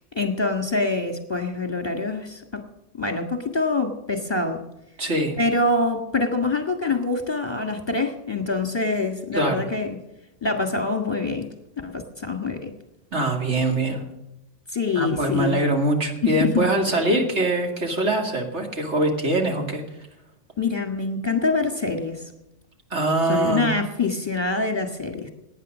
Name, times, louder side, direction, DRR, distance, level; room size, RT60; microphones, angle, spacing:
voice 1, 0.1-2.7 2.9-4.6 5.4-10.0 10.4-11.5 11.8-12.8 14.7-15.6 16.2-16.7 20.6-22.3 23.3-25.3, left 3 dB, 20° left, 5 dB, 1.6 m, -25 dB
voice 2, 5.0-5.4 9.3-9.6 13.1-14.0 14.9-19.8 22.9-23.7, right 1 dB, 65° right, 2 dB, 2.7 m, -23 dB
18.5 x 9.3 x 6.2 m, 0.91 s
omnidirectional pair, 1.3 m